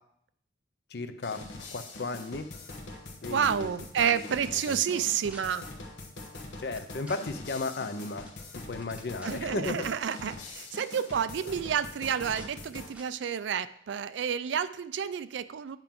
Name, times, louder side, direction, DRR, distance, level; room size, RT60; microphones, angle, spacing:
voice 1, 0.9-1.4 1.7-2.5 3.2-3.7 4.0-5.1 6.6-8.3 8.7-9.9, left 3 dB, 60° left, 9 dB, 0.6 m, -35 dB
sound 1, 1.2-12.9, left 2 dB, 85° left, 1.1 m, -44 dB
sound 2, 3.2-3.7 4.1-4.2 5.0-5.4 6.8-7.2 8.3-8.4 8.7-9.5 10.5-10.6 10.9-11.2 12.0-12.5 12.9-13.1, right 1 dB, 10° right, 0.8 m, -51 dB
voice 2, 3.3-5.7 9.2-15.8, right 8 dB, 75° right, 14 dB, 0.4 m, -30 dB
9.0 x 5.7 x 3.7 m, 0.71 s
head